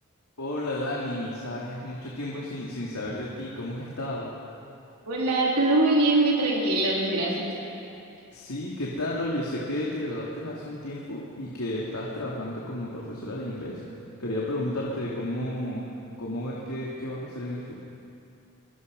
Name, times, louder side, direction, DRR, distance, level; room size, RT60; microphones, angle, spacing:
voice 1, 0.4-4.3 8.3-13.8 14.2-15.8 16.2-17.8, left 1 dB, 80° left, -5 dB, 3.0 m, -32 dB
voice 2, 5.1-7.6, right 2 dB, 90° right, -5 dB, 4.0 m, -23 dB
23.5 x 22.5 x 5.5 m, 2.7 s
head